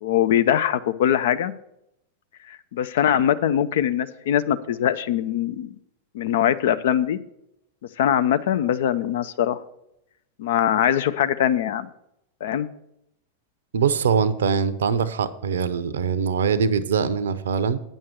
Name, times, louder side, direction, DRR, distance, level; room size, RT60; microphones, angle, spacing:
voice 1, 0.0-1.5 2.5-5.8 6.1-7.2 8.0-9.6 10.4-11.9 12.4-12.7, left 10 dB, 55° left, 12 dB, 0.4 m, -22 dB
voice 2, 13.7-17.8, right 6 dB, 65° right, 15 dB, 0.6 m, -22 dB
9.0 x 6.3 x 6.0 m, 0.82 s
figure-of-eight pair, 90°, 0 cm